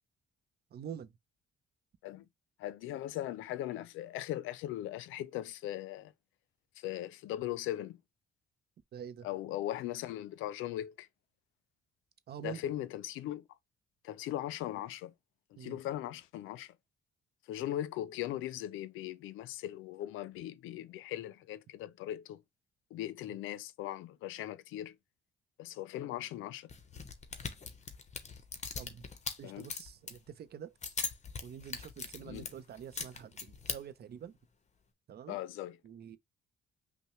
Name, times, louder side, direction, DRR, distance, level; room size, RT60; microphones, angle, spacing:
voice 1, 0.7-1.1 8.9-9.3 12.3-12.6 15.6-15.8 28.8-29.1 29.4-30.7 31.4-34.3 35.1-35.4 35.8-36.2, right 8 dB, 55° right, 0.6 m, -46 dB
voice 2, 2.6-6.1 6.8-8.0 9.2-11.1 12.4-13.5 14.0-15.1 15.5-16.8 17.5-22.4 22.9-25.0 25.6-26.7 29.4-29.7 32.2-32.5 35.3-35.8, left 13 dB, 90° left, 0.4 m, -39 dB
sound 1, 26.7-30.2 30.8-33.8, left 5 dB, 35° left, 0.9 m, -41 dB
5.5 x 2.1 x 3.0 m
cardioid pair, 90°, 20 cm